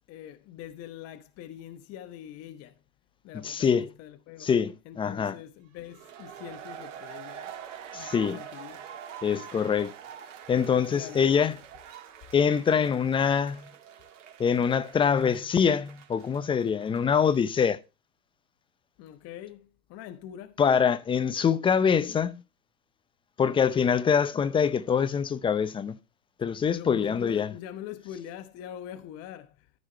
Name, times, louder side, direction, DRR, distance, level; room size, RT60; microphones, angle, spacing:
voice 1, 0.1-2.8 3.2-4.5 4.8-7.5 7.9-8.9 10.9-11.6 19.0-20.6 26.7-29.7, left 11 dB, 35° left, 1.0 m, -43 dB
voice 2, 3.4-3.8 4.4-5.4 7.9-8.4 9.2-9.9 10.5-11.5 12.3-13.6 14.4-17.8 20.6-22.4 23.4-26.0 26.4-27.5, left 7 dB, 10° left, 0.5 m, -24 dB
sound 1, 5.8-17.5, right 9 dB, 60° right, 2.1 m, -45 dB
13.5 x 4.9 x 4.5 m
hypercardioid pair, 110°, 42 cm